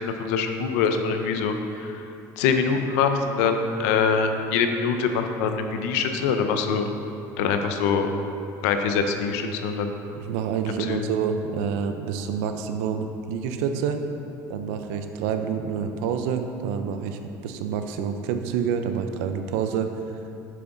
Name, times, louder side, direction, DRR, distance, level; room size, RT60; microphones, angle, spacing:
voice 1, 0.0-1.5 1.8-2.0 2.4-6.9 7.4-8.1 8.6-9.9 10.7-11.0, left 5 dB, 85° left, 6 dB, 0.6 m, -24 dB
voice 2, 10.1-14.0 14.5-19.9, right 7 dB, 85° right, 7 dB, 0.5 m, -28 dB
7.6 x 5.9 x 3.9 m, 2.8 s
supercardioid pair, 100°, 8 cm